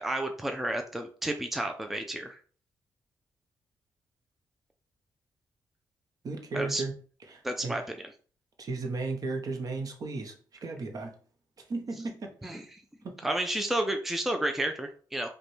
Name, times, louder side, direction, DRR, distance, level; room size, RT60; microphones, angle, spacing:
voice 1, 0.0-2.4 6.5-6.8 7.4-8.0 12.4-12.8 13.2-15.3, right 1 dB, 5° right, 5 dB, 0.4 m, -31 dB
voice 2, 6.2-6.9 7.3-7.8 8.6-10.3 10.6-11.1 11.7-12.6 13.0-13.1, right 3 dB, 50° right, 4 dB, 0.8 m, -35 dB
4.9 x 2.2 x 3.1 m, 0.42 s
cardioid pair, 90°, 8 cm